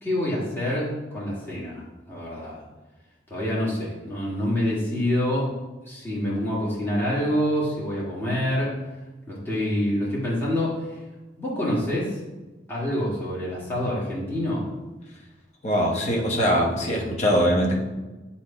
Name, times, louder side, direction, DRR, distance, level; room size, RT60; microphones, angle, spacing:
voice 1, 0.0-2.6 3.3-5.5 5.9-8.7 9.3-10.8 11.4-12.2 12.7-14.7, left 1 dB, 10° left, -8 dB, 1.6 m, -26 dB
voice 2, 15.6-17.8, equal, 40° left, -1 dB, 1.0 m, -22 dB
7.9 x 2.8 x 4.9 m, 1.2 s
head